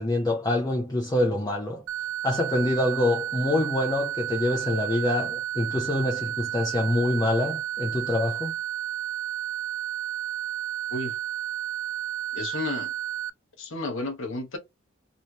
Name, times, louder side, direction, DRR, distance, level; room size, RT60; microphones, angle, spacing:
voice 1, 0.0-1.8 2.2-8.5, left 1 dB, 20° left, 0.6 m, -25 dB
sound 1, 1.9-13.3, right 12 dB, 75° right, 0.4 m, -32 dB
voice 2, 12.3-12.9 13.6-14.6, left 2 dB, 65° left, 1.1 m, -32 dB
3.2 x 2.9 x 2.8 m
head